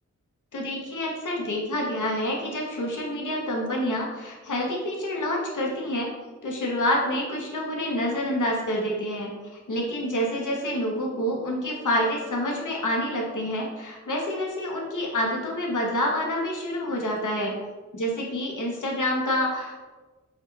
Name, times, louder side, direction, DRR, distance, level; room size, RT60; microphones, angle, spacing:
voice 1, 0.5-6.1 6.4-17.5 17.9-19.7, left 1 dB, 75° left, -1 dB, 0.7 m, -27 dB
3.3 x 2.3 x 3.1 m, 1.3 s
cardioid pair, 40°, 31 cm